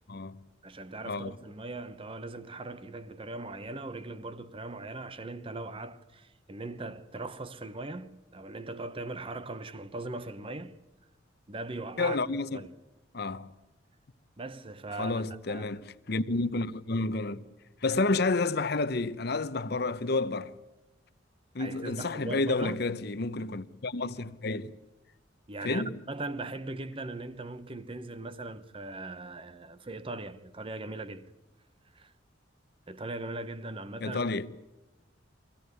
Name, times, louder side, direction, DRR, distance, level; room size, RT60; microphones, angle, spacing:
voice 1, 0.6-10.8 11.5-12.2 12.5-12.7 14.4-15.8 21.6-22.8 25.5-31.3 31.9-32.1 32.9-34.2, right 2 dB, 30° right, 0.8 m, -40 dB
voice 2, 12.0-12.6 13.1-13.5 15.0-17.4 17.8-20.5 21.5-24.7 25.6-25.9 34.0-34.5, left 3 dB, 55° left, 0.8 m, -30 dB
24.5 x 16.0 x 9.5 m
head